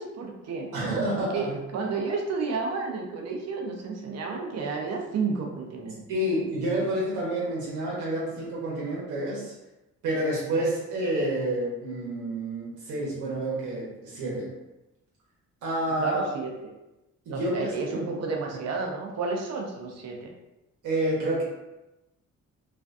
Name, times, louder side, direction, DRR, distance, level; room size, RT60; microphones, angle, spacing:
voice 1, 0.0-0.7 1.1-6.0 16.0-16.5 17.3-20.3, right 4 dB, 60° right, 1 dB, 0.6 m, -31 dB
voice 2, 0.7-1.6 6.1-9.5 10.0-14.5 15.6-16.2 17.2-18.0 20.8-21.4, right 1 dB, 85° right, -6 dB, 0.9 m, -29 dB
2.5 x 2.2 x 2.5 m, 0.99 s
cardioid pair, 90°, 30 cm